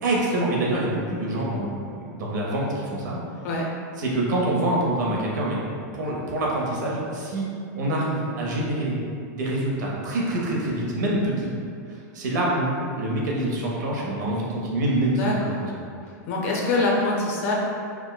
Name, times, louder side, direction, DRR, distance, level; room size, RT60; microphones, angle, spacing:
voice 1, 0.0-3.2 4.0-5.6 5.9-7.5 7.7-9.0 9.3-11.5 12.1-15.9, right 1 dB, 80° right, -3 dB, 0.8 m, -26 dB
voice 2, 15.2-15.6 16.3-17.5, left 2 dB, 50° left, -2 dB, 0.6 m, -24 dB
4.5 x 2.1 x 2.2 m, 2.4 s
supercardioid pair, 160°, 9 cm